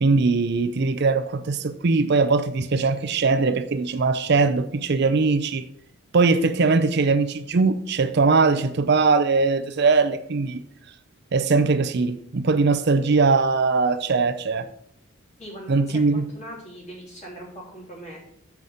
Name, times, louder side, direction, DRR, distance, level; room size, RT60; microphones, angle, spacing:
voice 1, 0.0-5.7 6.1-10.6 11.3-14.7 15.7-16.2, right 4 dB, 50° right, 0.5 m, -21 dB
voice 2, 15.4-18.2, equal, 35° left, 3.2 m, -40 dB
7.2 x 6.3 x 5.1 m
head